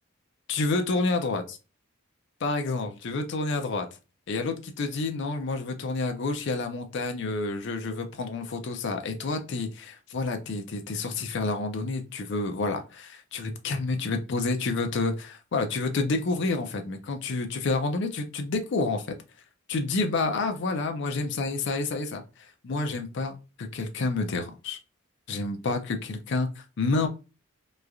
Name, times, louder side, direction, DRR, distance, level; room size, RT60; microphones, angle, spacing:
voice 1, 0.5-1.6 2.4-3.9 4.3-19.0 19.7-22.2 22.6-24.8 25.3-27.1, left 3 dB, 60° left, 5 dB, 0.5 m, -29 dB
3.0 x 2.3 x 2.4 m, 0.30 s
head